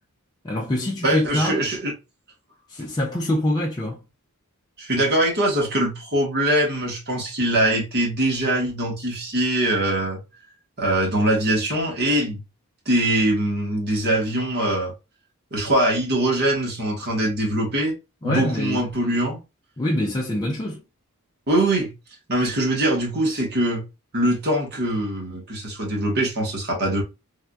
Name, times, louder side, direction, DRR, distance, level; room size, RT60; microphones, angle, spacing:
voice 1, 0.4-1.6 2.7-4.0 18.2-18.8 19.8-20.8, left 1 dB, 20° left, 0.4 m, -25 dB
voice 2, 1.0-1.9 4.8-10.2 10.8-12.4 12.9-14.9 15.5-17.9 18.2-19.4 21.5-21.9 22.3-23.8 24.1-27.0, right 1 dB, 50° right, 1.2 m, -22 dB
3.4 x 2.5 x 2.2 m
head